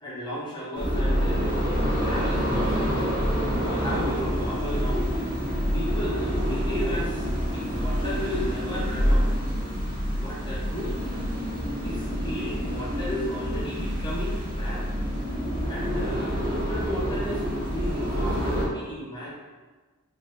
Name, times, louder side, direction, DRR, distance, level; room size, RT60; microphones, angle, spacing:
voice 1, 0.0-3.0 3.6-5.0 5.7-7.3 7.5-9.3 10.2-10.9 11.8-14.9 15.6-19.4, equal, 20° left, -7 dB, 1.0 m, -34 dB
sound 1, 0.7-18.6, equal, 40° right, 1.2 m, -27 dB
4.9 x 2.7 x 3.1 m, 1.3 s
head